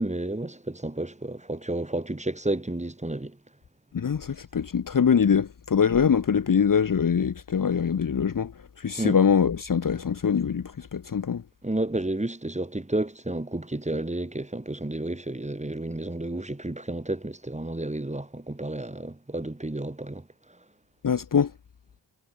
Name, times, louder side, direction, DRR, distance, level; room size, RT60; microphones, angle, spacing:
voice 1, 0.0-3.4 9.0-9.2 11.6-20.2, right 1 dB, 15° right, 3.0 m, -31 dB
voice 2, 3.9-8.5 8.8-11.4 21.0-21.5, left 7 dB, 45° left, 1.0 m, -23 dB
cardioid pair, 70°, 45 cm